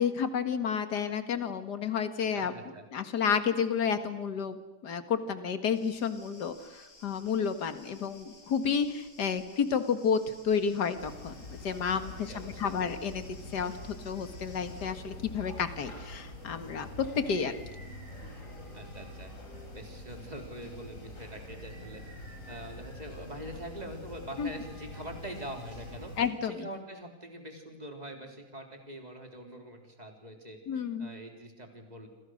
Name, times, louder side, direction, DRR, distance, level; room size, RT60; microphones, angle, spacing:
voice 1, 0.0-2.5 2.9-4.6 4.8-13.3 13.5-17.6 24.4-24.5 26.2-26.5 30.7-31.1, left 6 dB, 55° left, 9 dB, 2.2 m, -31 dB
voice 2, 2.3-2.8 12.3-12.7 18.7-19.3 19.7-22.0 22.3-26.1 26.4-30.6 31.0-32.1, right 1 dB, 20° right, 3 dB, 3.9 m, -44 dB
sound 1, 5.7-14.9, left 2 dB, 80° left, 5.9 m, -57 dB
sound 2, 11.0-26.3, left 1 dB, 35° left, 4.7 m, -45 dB
27.5 x 27.0 x 6.5 m, 1.0 s
omnidirectional pair, 2.3 m